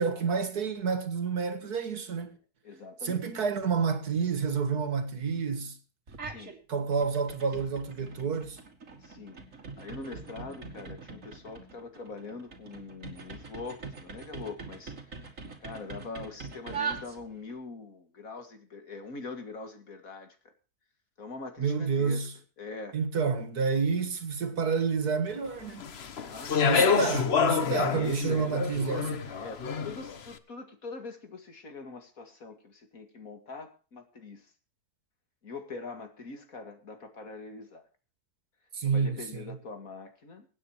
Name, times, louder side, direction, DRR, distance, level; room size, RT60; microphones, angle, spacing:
voice 1, 0.0-2.3 3.0-5.8 6.7-8.6 21.6-22.3 22.9-25.9 26.7-29.3 38.7-39.5, right 5 dB, 85° right, 2.4 m, -29 dB
voice 2, 2.6-3.3 6.2-6.5 7.0-7.1 9.0-20.4 21.2-22.3 22.6-23.0 26.3-26.8 27.7-28.7 29.3-34.5 35.4-37.9 38.8-40.5, left 3 dB, 65° left, 2.6 m, -43 dB
sound 1, 6.1-6.6 6.9-17.6, right 5 dB, 55° right, 2.6 m, -42 dB
Speech, 25.8-30.1, left 6 dB, 45° left, 1.1 m, -27 dB
24.0 x 9.4 x 3.1 m
omnidirectional pair, 1.6 m